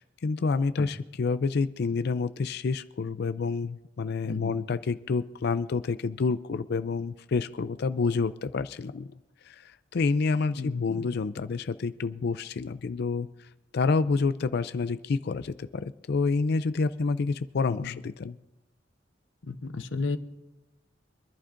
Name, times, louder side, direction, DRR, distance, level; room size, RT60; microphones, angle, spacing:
voice 1, 0.0-9.1 9.4-13.5 13.7-18.4, left 4 dB, 60° left, 13 dB, 0.4 m, -28 dB
voice 2, 4.3-4.6 10.6-11.1 17.7-18.0 19.5-20.2, left 3 dB, 80° left, 9 dB, 0.8 m, -33 dB
26.0 x 11.5 x 2.5 m, 0.96 s
head